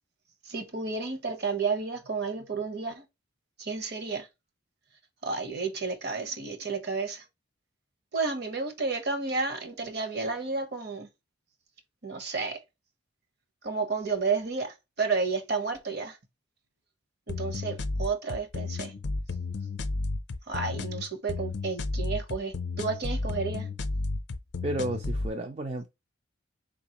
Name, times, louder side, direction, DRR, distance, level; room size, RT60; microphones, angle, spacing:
voice 1, 0.4-3.0 3.6-4.3 5.2-7.2 8.1-11.1 12.0-12.6 13.6-16.2 17.3-18.9 20.5-23.7, right 4 dB, 50° right, 0.9 m, -31 dB
sound 1, 17.3-25.3, left 3 dB, 60° left, 0.5 m, -32 dB
voice 2, 24.6-25.9, right 2 dB, 30° right, 0.3 m, -32 dB
4.1 x 3.8 x 2.9 m
head